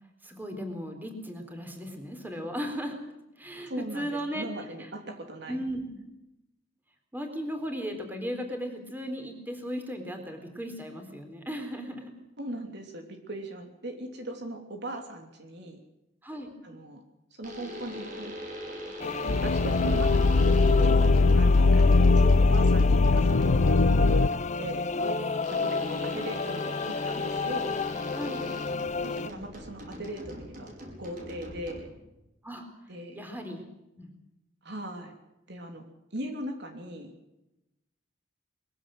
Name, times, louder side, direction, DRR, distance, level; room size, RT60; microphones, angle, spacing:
voice 1, 0.2-3.0 3.4-4.5 4.8-4.9 5.5-5.9 7.1-12.1 16.2-16.5 21.8-22.3 24.9-25.5 25.8-26.2 28.1-28.4 32.4-32.7 33.1-33.6 33.9-34.1, equal, 10° right, 5 dB, 3.9 m, -36 dB
voice 2, 3.7-5.6 12.4-15.8 16.6-17.0 17.3-18.3 19.2-20.3 20.6-24.8 25.5-27.8 29.0-31.9 32.9-33.2 34.6-35.1 35.5-35.9 36.1-37.1, right 1 dB, 60° right, 4 dB, 3.1 m, -39 dB
sound 1, 17.4-24.0 25.4-32.1, equal, 45° right, 5.3 m, -41 dB
sound 2, 19.0-29.3, left 4 dB, 35° left, 0.6 m, -32 dB
sound 3, 19.3-24.3, left 3 dB, 90° left, 0.8 m, -20 dB
22.0 x 16.0 x 7.8 m, 0.93 s
head